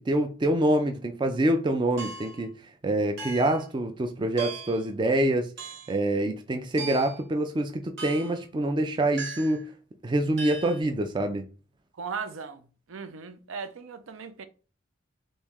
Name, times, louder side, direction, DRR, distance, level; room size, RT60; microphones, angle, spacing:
voice 1, 0.0-2.5 2.8-5.5 5.9-9.7 10.0-11.5, right 1 dB, 25° right, 0.3 m, -26 dB
sound 1, 2.0-2.4 3.2-3.6 4.4-4.8 5.6-5.9 6.8-7.2 8.0-8.4 9.2-9.7 10.4-10.8, right 4 dB, 55° right, 1.1 m, -38 dB
voice 2, 12.0-12.6 12.9-14.4, right 5 dB, 80° right, 0.5 m, -37 dB
3.1 x 2.7 x 3.5 m
head